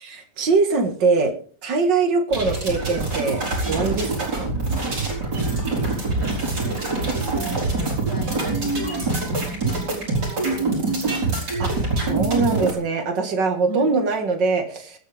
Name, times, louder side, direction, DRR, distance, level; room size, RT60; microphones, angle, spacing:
voice 1, 0.0-1.3 1.6-3.4 3.7-4.5 11.6-11.7 12.0-15.0, right 4 dB, 90° right, 6 dB, 2.5 m, -22 dB
sound 1, 2.3-12.7, right 3 dB, 70° right, 5.0 m, -24 dB
voice 2, 6.0-11.3 13.7-13.9, equal, 10° left, 3 dB, 1.7 m, -37 dB
23.5 x 8.9 x 3.5 m, 0.43 s
omnidirectional pair, 1.9 m